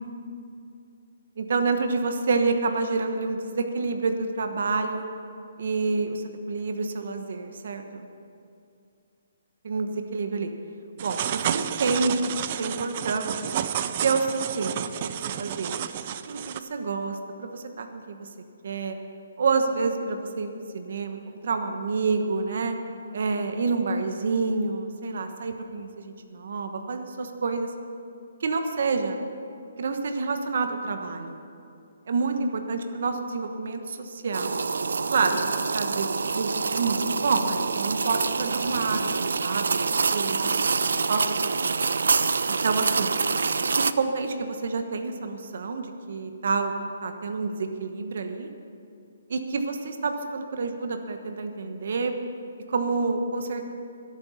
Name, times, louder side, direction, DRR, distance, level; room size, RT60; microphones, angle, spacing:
voice 1, 1.4-5.1 5.6-8.1 9.6-10.5 11.0-13.4 14.0-15.7 16.3-18.3 18.6-19.0 19.4-22.8 23.1-27.7 28.4-29.2 29.8-31.4 32.1-34.5 35.1-35.4 35.7-39.1 39.4-40.5 41.1-41.6 42.5-43.1 43.8-46.7 47.0-48.5 49.3-52.2 52.7-53.7, right 4 dB, 50° right, 6 dB, 1.2 m, -28 dB
sound 1, 11.0-16.6, right 10 dB, 25° right, 0.4 m, -31 dB
sound 2, 34.3-43.9, right 4 dB, 85° right, 0.6 m, -26 dB
22.0 x 8.9 x 5.7 m, 2.5 s
hypercardioid pair, 180°, 0 cm